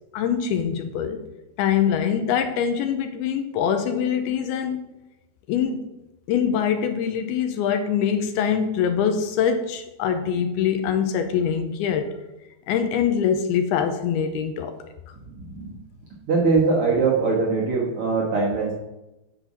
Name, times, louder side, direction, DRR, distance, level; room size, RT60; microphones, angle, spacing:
voice 1, 0.1-1.2 1.6-4.8 5.5-5.8 6.3-12.1 12.7-14.8, left 8 dB, 85° left, 7 dB, 2.5 m, -23 dB
voice 2, 16.3-18.7, right 4 dB, 80° right, -4 dB, 1.2 m, -21 dB
10.0 x 4.2 x 7.2 m, 0.97 s
omnidirectional pair, 4.7 m